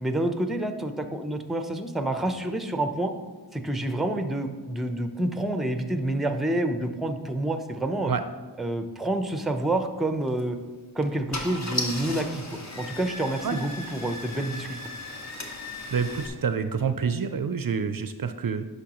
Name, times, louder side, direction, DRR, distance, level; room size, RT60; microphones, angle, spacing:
voice 1, 0.0-3.1 3.5-8.1 8.6-10.6 10.9-14.8, right 1 dB, ahead, 7 dB, 0.6 m, -28 dB
Car / Engine starting, 10.2-10.4 11.0-11.1 11.3-16.3, left 2 dB, 40° left, 1.1 m, -36 dB
voice 2, 15.9-18.6, right 6 dB, 60° right, 9 dB, 0.5 m, -27 dB
10.0 x 5.6 x 3.0 m, 1.3 s
wide cardioid pair, 45°, 40 cm